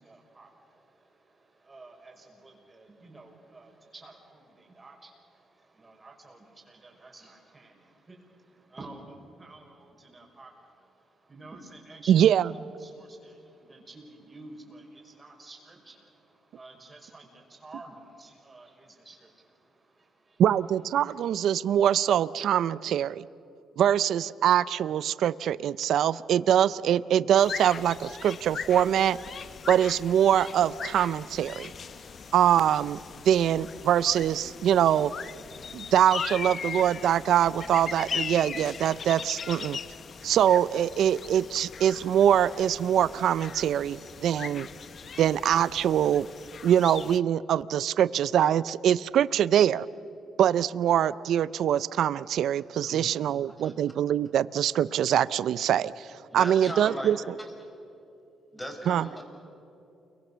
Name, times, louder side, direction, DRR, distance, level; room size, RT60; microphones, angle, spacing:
voice 1, 0.0-20.4 21.0-21.2 56.3-56.4, right 2 dB, 25° right, 1 dB, 5.6 m, -51 dB
voice 2, 12.1-12.4 20.4-23.2 23.8-29.2 29.7-31.7 32.3-33.0 33.2-35.1 35.7-39.8 40.2-44.7 45.2-46.3 46.6-49.9 50.4-56.1 56.3-57.2 58.9-59.0, right 10 dB, 70° right, 18 dB, 0.5 m, -23 dB
sound 1, 27.4-47.2, left 6 dB, 50° left, 0.7 m, -39 dB
voice 3, 52.8-53.3 53.6-53.7 56.3-57.5 58.5-59.3, equal, 5° left, 3 dB, 5.2 m, -38 dB
29.0 x 23.5 x 6.8 m, 2.8 s
cardioid pair, 90°, 0 cm